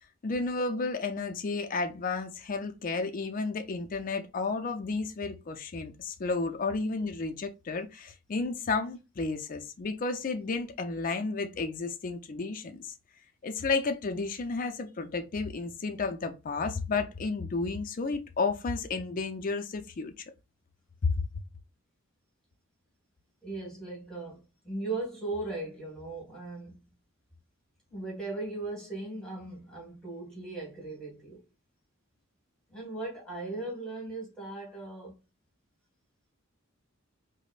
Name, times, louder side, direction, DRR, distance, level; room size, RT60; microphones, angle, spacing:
voice 1, 0.2-12.9 13.4-20.2 21.0-21.2, left 3 dB, 40° left, 0.4 m, -32 dB
voice 2, 23.4-26.8 27.9-31.4 32.7-35.2, right 2 dB, 5° left, 1.6 m, -38 dB
5.0 x 2.1 x 2.4 m
head